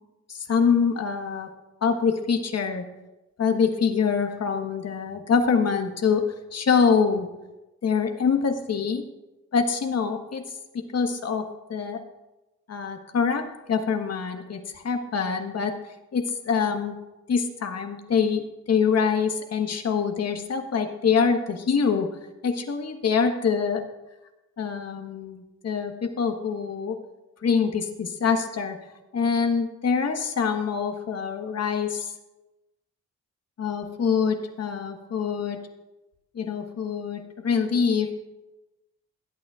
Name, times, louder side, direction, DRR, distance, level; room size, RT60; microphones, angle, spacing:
voice 1, 0.3-1.5 1.8-2.8 3.4-6.2 6.5-7.3 7.8-9.0 9.5-10.4 10.9-11.4 11.7-12.0 12.7-15.7 16.1-17.0 17.3-22.1 22.4-23.8 24.6-27.0 27.4-28.8 29.1-32.1 33.6-35.6 36.3-38.1, left 6 dB, 50° left, 5 dB, 1.4 m, -25 dB
18.0 x 8.6 x 2.5 m, 1.0 s
supercardioid pair, 60°, 31 cm